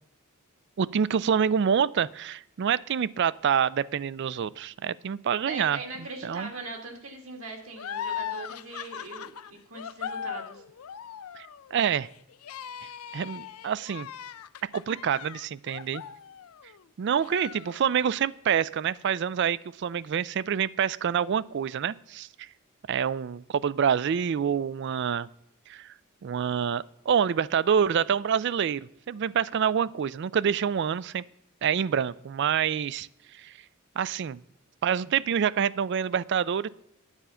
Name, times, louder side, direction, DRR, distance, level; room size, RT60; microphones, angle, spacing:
voice 1, 0.8-5.8 6.2-6.5 11.4-12.1 13.1-14.1 14.7-16.0 17.0-22.5 22.9-25.3 25.7-25.9 26.2-31.2 31.6-33.1 33.4-33.5 34.0-34.4 34.8-36.7, right 7 dB, 55° right, 20 dB, 0.3 m, -27 dB
voice 2, 5.5-10.6, right 3 dB, 70° right, 3 dB, 2.2 m, -40 dB
sound 1, 7.8-16.8 17.2-18.2, left 8 dB, 85° left, 0.5 m, -39 dB
9.8 x 9.0 x 5.6 m, 0.79 s
head